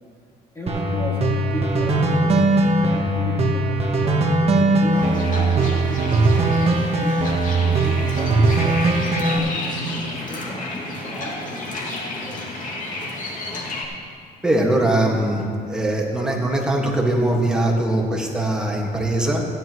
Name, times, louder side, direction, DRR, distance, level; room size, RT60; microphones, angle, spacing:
voice 1, 0.5-7.2 7.6-12.4, equal, 15° left, -4 dB, 2.3 m, -35 dB
sound 1, 0.7-9.4, right 2 dB, 35° right, 1.3 m, -19 dB
sound 2, 4.9-13.8, left 2 dB, 50° left, 2.3 m, -31 dB
voice 2, 14.4-19.5, right 1 dB, 5° right, -2 dB, 1.8 m, -21 dB
16.0 x 10.5 x 3.1 m, 2.2 s
cardioid pair, 110°, 17 cm